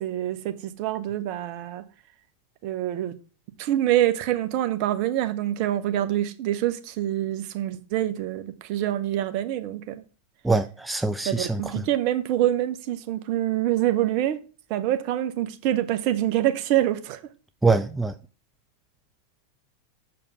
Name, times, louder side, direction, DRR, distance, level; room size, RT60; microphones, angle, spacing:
voice 1, 0.0-1.8 2.6-3.1 3.6-10.0 11.3-14.4 14.7-17.2, right 13 dB, 45° right, 0.7 m, -25 dB
voice 2, 10.4-11.6 17.6-18.1, right 3 dB, 5° right, 0.4 m, -23 dB
6.5 x 4.7 x 4.8 m
figure-of-eight pair, 90°, 0 cm